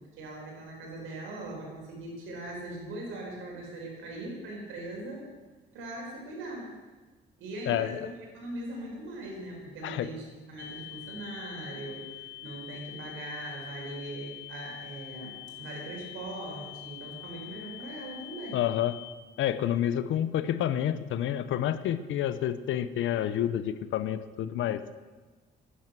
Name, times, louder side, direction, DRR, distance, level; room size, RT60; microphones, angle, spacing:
voice 1, 0.0-5.3 5.7-6.8 7.4-8.1 8.3-18.6, right 1 dB, 90° right, -1 dB, 4.7 m, -40 dB
voice 2, 7.7-8.0 9.8-10.1 18.5-19.0 19.4-24.8, left 11 dB, 80° left, 13 dB, 0.8 m, -29 dB
sound 1, 10.6-19.1, left 16 dB, 55° left, 1.0 m, -45 dB
11.0 x 10.0 x 7.6 m, 1.3 s
cardioid pair, 90°, 20 cm